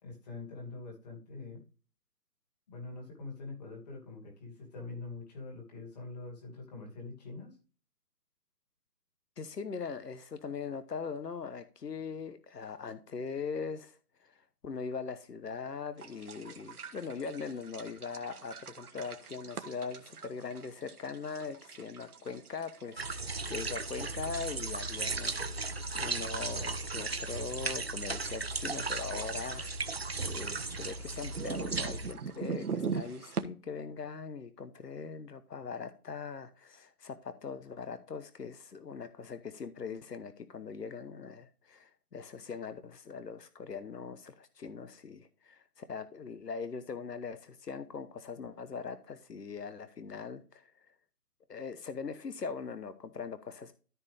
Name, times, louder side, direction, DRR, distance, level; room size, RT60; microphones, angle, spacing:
voice 1, 0.0-1.6 2.7-7.6, left 3 dB, 25° left, 1 dB, 2.6 m, -44 dB
voice 2, 9.4-29.7 30.2-50.9 51.5-53.7, left 5 dB, 85° left, 12 dB, 1.1 m, -41 dB
sound 1, 16.0-33.4, right 6 dB, 70° right, 1.4 m, -44 dB
sound 2, 23.0-32.1, right 3 dB, 45° right, 0.5 m, -36 dB
14.0 x 4.7 x 3.4 m, 0.37 s
hypercardioid pair, 165°, 47 cm